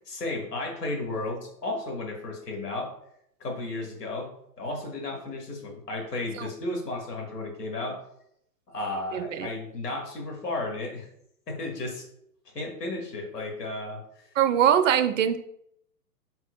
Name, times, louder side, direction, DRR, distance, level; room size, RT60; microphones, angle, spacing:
voice 1, 0.1-2.9 3.4-8.0 8.7-11.1 11.5-12.0 12.5-14.0, left 2 dB, 75° left, 0 dB, 1.5 m, -33 dB
voice 2, 9.1-9.5 14.4-15.4, right 9 dB, 55° right, 10 dB, 0.5 m, -22 dB
4.2 x 3.9 x 2.2 m, 0.73 s
figure-of-eight pair, 115°, 49 cm